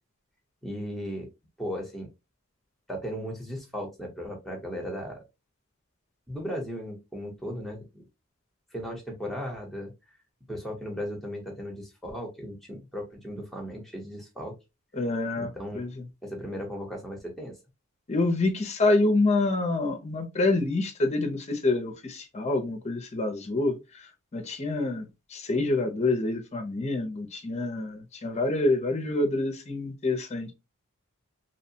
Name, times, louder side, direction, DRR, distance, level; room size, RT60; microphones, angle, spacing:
voice 1, 0.6-1.3 1.6-2.1 2.9-5.2 6.3-8.0 8.7-9.9 10.5-14.5 15.4-15.8 16.2-17.5, equal, ahead, 0.8 m, -36 dB
voice 2, 14.9-15.5 15.7-15.9 18.1-23.7 24.3-25.1 25.3-30.5, left 2 dB, 30° left, 0.5 m, -26 dB
2.8 x 2.1 x 2.6 m
head